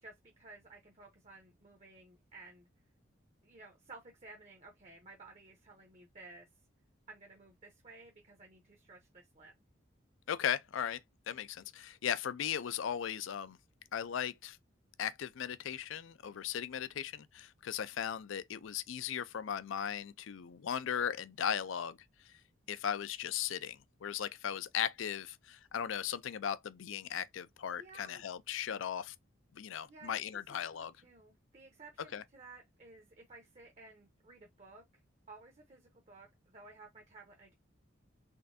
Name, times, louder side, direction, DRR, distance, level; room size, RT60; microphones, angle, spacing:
voice 1, 0.0-2.7 3.4-6.5 7.1-9.5 27.8-28.2 29.8-30.2 30.5-35.0 35.3-37.5, right 3 dB, 35° right, 0.7 m, -55 dB
voice 2, 10.3-11.0 11.3-13.6 13.9-14.6 15.0-22.0 22.7-29.1 29.5-30.9 32.1-32.2, left 8 dB, 75° left, 0.4 m, -37 dB
3.7 x 3.3 x 2.6 m
head